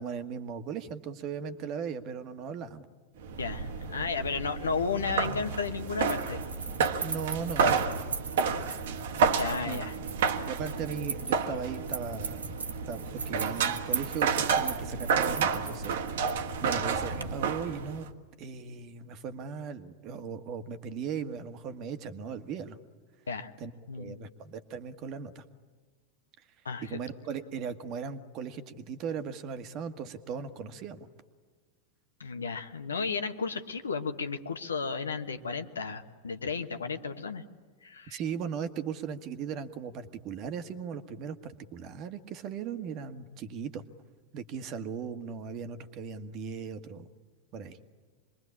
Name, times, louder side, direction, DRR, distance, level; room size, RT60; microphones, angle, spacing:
voice 1, 0.0-2.8 7.0-8.0 9.6-9.8 10.5-12.5 12.9-18.1 18.4-22.8 23.6-23.7 24.0-25.4 26.8-31.0 38.1-43.8 44.3-47.1 47.5-47.8, right 6 dB, 40° right, 10 dB, 1.5 m, -38 dB
sound 1, 3.2-18.1, right 5 dB, 60° right, 1.5 m, -31 dB
voice 2, 3.4-6.4 9.4-9.9 23.3-23.5 23.9-24.2 26.6-27.0 32.2-37.4 37.8-38.2, left 5 dB, 70° left, 9 dB, 1.3 m, -33 dB
sound 2, 5.2-17.2, right 4 dB, 75° right, 1.8 m, -39 dB
27.0 x 22.0 x 8.6 m, 1.5 s
figure-of-eight pair, 90°, 0 cm